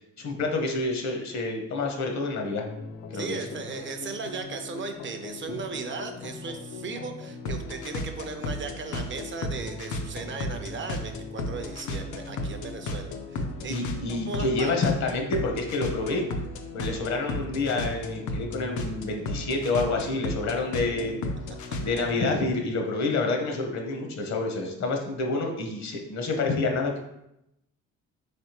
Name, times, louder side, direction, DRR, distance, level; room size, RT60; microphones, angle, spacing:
voice 1, 0.2-2.6 3.1-3.4 13.7-16.2 16.7-21.3 21.8-27.0, left 3 dB, 65° left, 3 dB, 0.9 m, -28 dB
sound 1, 2.6-22.2, left 2 dB, 80° left, 0.6 m, -35 dB
voice 2, 3.1-13.9 14.3-14.8, right 4 dB, 40° right, 7 dB, 0.4 m, -37 dB
3.8 x 3.3 x 2.9 m, 0.83 s
cardioid pair, 90°, 30 cm